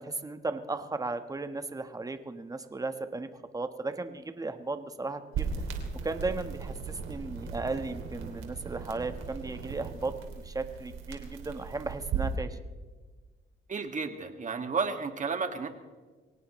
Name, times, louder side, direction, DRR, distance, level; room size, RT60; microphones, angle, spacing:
voice 1, 0.0-3.3 3.5-5.6 6.0-10.1 10.4-12.6, right 3 dB, 20° right, 9 dB, 1.3 m, -35 dB
sound 1, 5.3-12.4, right 6 dB, 85° right, 2.9 m, -37 dB
voice 2, 13.7-15.7, right 5 dB, 40° right, 6 dB, 2.0 m, -32 dB
23.5 x 18.0 x 3.2 m, 1.4 s
cardioid pair, 90°, 20 cm